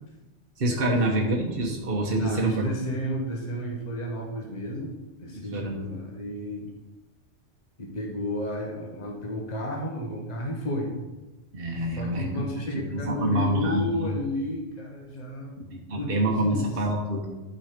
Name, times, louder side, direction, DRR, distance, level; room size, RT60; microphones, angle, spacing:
voice 1, 0.6-2.7 5.3-5.8 11.5-12.3 12.7-14.1 15.6-17.3, right 1 dB, 50° right, -1 dB, 1.4 m, -27 dB
voice 2, 2.1-4.9 5.2-6.7 7.8-10.9 11.9-15.6 16.0-16.1 16.4-16.7, equal, 35° left, -1 dB, 1.5 m, -32 dB
11.5 x 4.9 x 5.1 m, 1.1 s
omnidirectional pair, 1.3 m